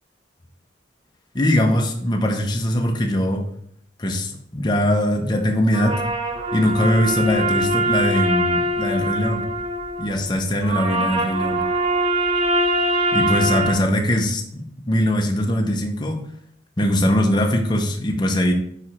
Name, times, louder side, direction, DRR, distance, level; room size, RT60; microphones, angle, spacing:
voice 1, 1.3-3.5 4.0-6.0 6.5-9.5 10.0-11.7 13.1-16.2 16.8-18.5, equal, 20° left, 2 dB, 0.6 m, -21 dB
sound 1, 5.7-13.7, right 1 dB, 25° right, 0.5 m, -23 dB
4.9 x 4.7 x 4.2 m, 0.67 s
head